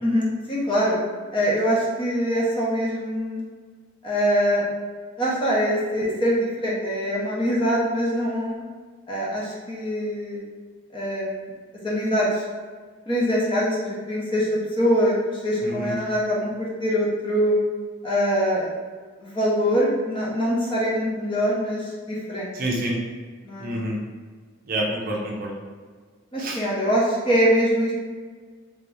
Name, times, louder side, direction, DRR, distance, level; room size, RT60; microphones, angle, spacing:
voice 1, 0.0-1.0 1.3-3.4 4.0-4.6 5.2-8.6 9.1-10.4 10.9-11.5 11.8-12.4 13.1-15.1 15.4-17.6 18.0-18.7 19.2-22.5 23.4-23.7 26.3-27.9, equal, 25° left, -5 dB, 0.8 m, -23 dB
voice 2, 15.6-16.0 22.6-22.9 23.6-24.0 24.7-25.5 26.4-26.6, right 1 dB, 45° right, -2 dB, 0.6 m, -27 dB
3.4 x 2.8 x 3.4 m, 1.5 s
head